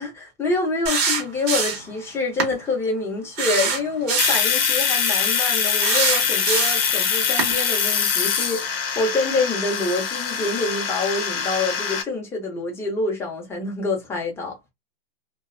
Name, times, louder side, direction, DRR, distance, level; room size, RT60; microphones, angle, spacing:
voice 1, 0.0-14.6, left 3 dB, 10° left, 0.6 m, -26 dB
sound 1, 0.9-1.9 2.4-2.5 3.4-4.5 5.8-6.9 7.4-7.5, right 5 dB, 30° right, 0.8 m, -23 dB
Domestic sounds home sounds, 4.2-12.0, left 7 dB, 65° left, 0.7 m, -23 dB
2.5 x 2.1 x 2.5 m
hypercardioid pair, 145°, 31 cm